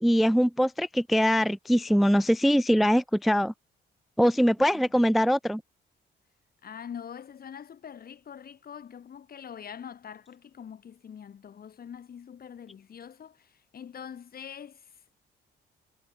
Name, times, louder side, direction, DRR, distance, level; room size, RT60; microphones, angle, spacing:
voice 1, 0.0-3.5 4.2-5.6, equal, ahead, 0.4 m, -22 dB
voice 2, 6.6-15.1, left 8 dB, 50° left, 1.6 m, -44 dB
cardioid pair, 90°, 20 cm